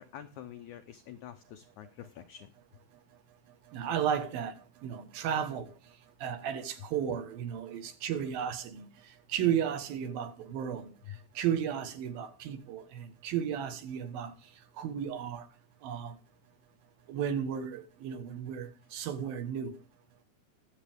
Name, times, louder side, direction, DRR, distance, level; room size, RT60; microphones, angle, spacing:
voice 1, 0.0-2.5 11.1-11.2, left 11 dB, 80° left, 1.7 m, -47 dB
voice 2, 3.7-5.7 6.2-8.9 9.3-10.9 11.4-14.3 14.8-15.5 15.8-16.2 17.1-19.7, right 8 dB, 75° right, 3.1 m, -34 dB
21.5 x 7.5 x 3.5 m
omnidirectional pair, 4.4 m